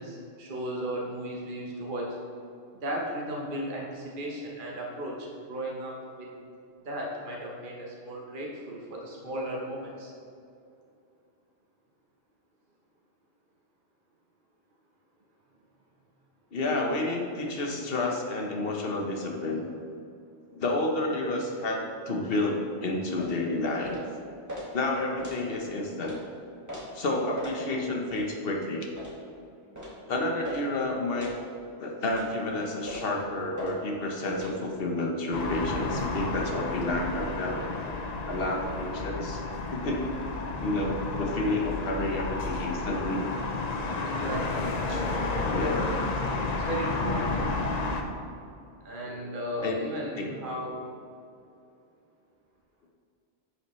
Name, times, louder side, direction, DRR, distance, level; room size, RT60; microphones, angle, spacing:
voice 1, 0.0-2.1 2.7-6.3 6.8-10.1 44.0-45.2 46.6-47.5 48.8-50.8, right 1 dB, 50° right, -3 dB, 1.2 m, -35 dB
voice 2, 16.5-19.6 20.5-24.0 24.7-26.2 26.9-28.9 30.1-31.3 31.8-37.9 38.3-39.4 39.7-40.1 40.6-43.3 44.9-45.0 45.5-46.0 49.0-49.2 49.6-49.8 50.2-50.3, left 2 dB, 55° left, 0 dB, 1.3 m, -30 dB
sound 1, 23.2-23.4 23.8-24.1 24.5-24.7 25.2-25.4 26.0-26.2 26.7-26.9 27.4-27.6 28.1-28.3 29.0-29.2 29.8-30.0 30.4-30.7 31.2-31.4 32.1-32.3 32.9-33.1 33.6-33.7 34.3-34.5, left 1 dB, 15° right, 1.8 m, -40 dB
sound 2, 35.3-48.0, left 3 dB, 40° left, 0.7 m, -31 dB
11.0 x 6.5 x 3.2 m, 2.6 s
omnidirectional pair, 1.1 m